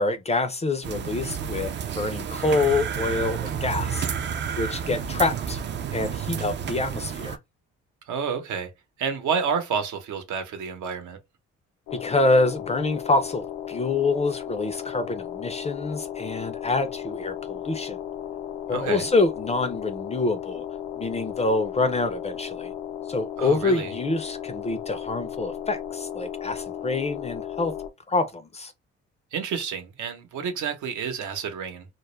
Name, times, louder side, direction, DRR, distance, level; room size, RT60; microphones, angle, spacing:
voice 1, 0.0-4.1 4.6-5.6 5.9-7.4 11.9-18.0 18.7-20.6 21.0-22.7 23.1-27.7 28.1-28.7, left 3 dB, 20° left, 0.4 m, -26 dB
sound 1, 0.8-7.4, right 7 dB, 40° right, 0.4 m, -30 dB
voice 2, 8.1-8.7 9.0-11.2 18.7-19.1 23.4-23.9 29.3-31.9, right 6 dB, 75° right, 0.8 m, -29 dB
sound 2, 11.9-27.9, left 10 dB, 90° left, 0.5 m, -35 dB
2.3 x 2.0 x 3.0 m
cardioid pair, 90°, 30 cm